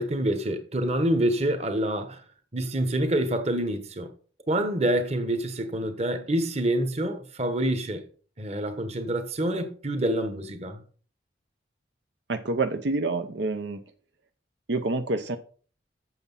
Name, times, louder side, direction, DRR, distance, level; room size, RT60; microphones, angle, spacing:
voice 1, 0.0-2.2 2.5-4.1 4.5-8.1 8.4-10.8, right 1 dB, 35° right, 1.2 m, -27 dB
voice 2, 12.3-13.8 14.7-15.4, right 3 dB, 75° right, 0.8 m, -27 dB
7.8 x 7.1 x 5.4 m
head